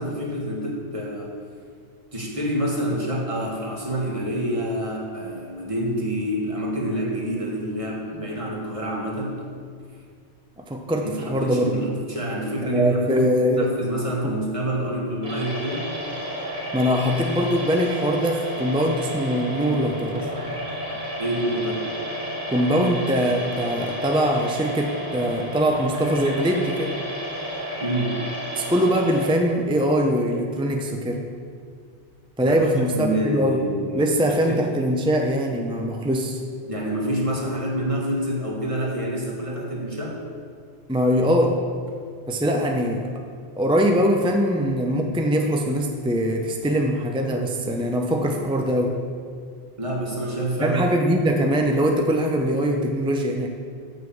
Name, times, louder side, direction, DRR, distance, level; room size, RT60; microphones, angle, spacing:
voice 1, 0.0-1.4 2.1-9.4 11.0-13.3 13.6-16.0 21.2-21.8 27.8-28.2 32.5-34.6 36.7-40.2 49.8-50.9, right 1 dB, 30° right, -3 dB, 1.6 m, -27 dB
voice 2, 10.6-11.9 12.6-13.7 14.2-14.3 16.7-20.3 22.5-27.0 28.6-31.2 32.4-33.7 34.0-36.4 40.9-41.6 42.3-43.1 43.6-49.0 50.6-53.5, equal, 10° right, 2 dB, 0.3 m, -22 dB
sound 1, 15.2-29.3, equal, 80° right, 2.8 m, -32 dB
7.3 x 6.4 x 7.0 m, 2.1 s
omnidirectional pair, 1.1 m